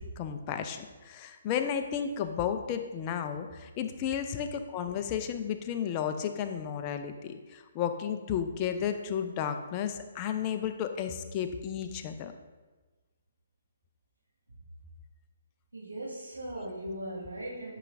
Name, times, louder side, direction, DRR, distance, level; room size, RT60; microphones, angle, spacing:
voice 1, 0.2-12.3, left 8 dB, 30° left, 7 dB, 0.6 m, -33 dB
voice 2, 15.7-17.8, right 1 dB, 85° right, -4 dB, 2.0 m, -38 dB
9.9 x 5.8 x 2.6 m, 1.3 s
figure-of-eight pair, 135°, 0 cm